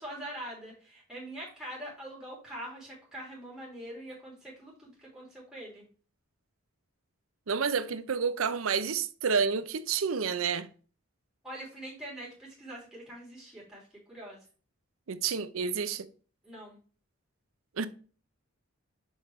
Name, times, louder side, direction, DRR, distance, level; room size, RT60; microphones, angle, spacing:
voice 1, 0.0-5.8 11.4-14.4 16.4-16.8, right 1 dB, 5° right, 3.3 m, -43 dB
voice 2, 7.5-10.7 15.1-16.1 17.8-17.9, right 6 dB, 70° right, 0.6 m, -29 dB
6.4 x 5.1 x 3.1 m
head